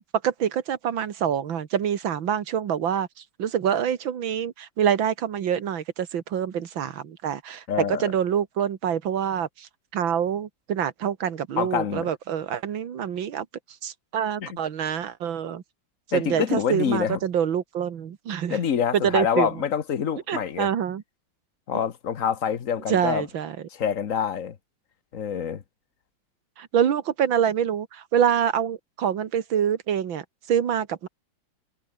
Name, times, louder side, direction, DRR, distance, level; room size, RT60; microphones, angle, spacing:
voice 1, 0.0-3.1 3.4-13.5 13.8-15.6 16.1-18.6 18.9-19.6 20.3-21.0 22.9-23.6 26.6-31.1, right 8 dB, 85° right, 2.3 m, -26 dB
voice 2, 7.7-8.1 11.6-12.1 14.4-14.6 16.1-17.2 18.5-20.7 21.7-23.2 23.7-24.5 25.1-25.6, left 8 dB, 45° left, 1.4 m, -26 dB
omnidirectional pair, 2.1 m